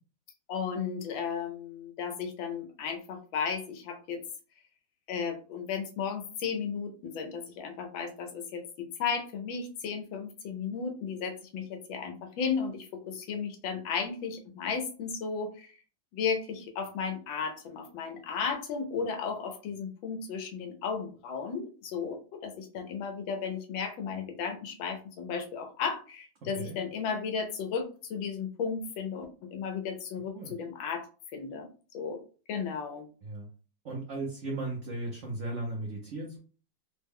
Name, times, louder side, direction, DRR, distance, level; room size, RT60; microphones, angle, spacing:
voice 1, 0.5-4.2 5.1-15.8 16.1-31.1 31.3-31.7 31.9-32.2 32.5-33.1, left 6 dB, 80° left, 5 dB, 1.4 m, -34 dB
voice 2, 33.8-36.4, right 2 dB, 60° right, -1 dB, 0.8 m, -36 dB
3.6 x 2.1 x 3.5 m, 0.38 s
omnidirectional pair, 2.1 m